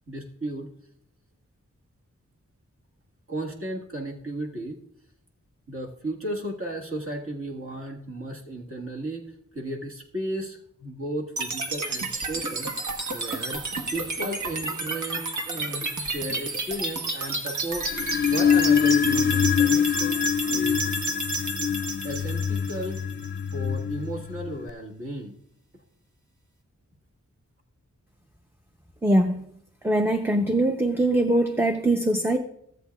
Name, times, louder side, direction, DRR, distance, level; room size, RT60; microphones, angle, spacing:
voice 1, 0.1-0.7 3.3-4.8 5.7-13.6 13.9-20.2 20.5-20.8 22.0-23.0 23.5-25.4, right 1 dB, 45° right, -1 dB, 1.7 m, -34 dB
sound 1, 11.4-23.4, right 3 dB, 70° right, 1.3 m, -31 dB
sound 2, 17.8-24.7, left 8 dB, 40° left, 0.4 m, -24 dB
voice 2, 29.0-29.4 29.8-32.4, right 1 dB, 5° right, 5 dB, 0.6 m, -22 dB
16.0 x 8.1 x 2.3 m, 0.73 s
wide cardioid pair, 85°, 31 cm